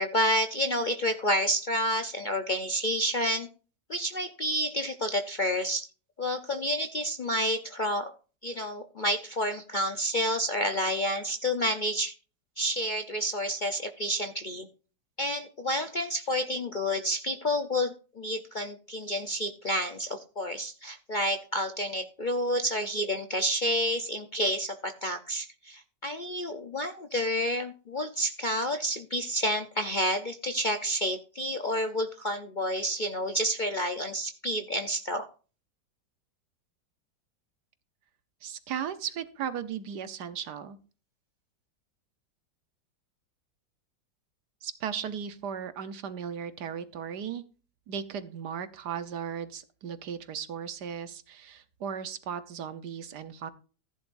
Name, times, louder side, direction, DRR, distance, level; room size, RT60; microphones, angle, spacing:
voice 1, 0.0-3.5 3.9-5.9 6.2-8.1 8.4-12.1 12.6-14.7 15.2-35.3, equal, 60° left, 7 dB, 0.5 m, -29 dB
voice 2, 38.4-40.8 44.6-47.4 47.9-53.5, right 8 dB, 65° right, 11 dB, 1.4 m, -36 dB
15.0 x 10.5 x 2.6 m, 0.36 s
omnidirectional pair, 1.9 m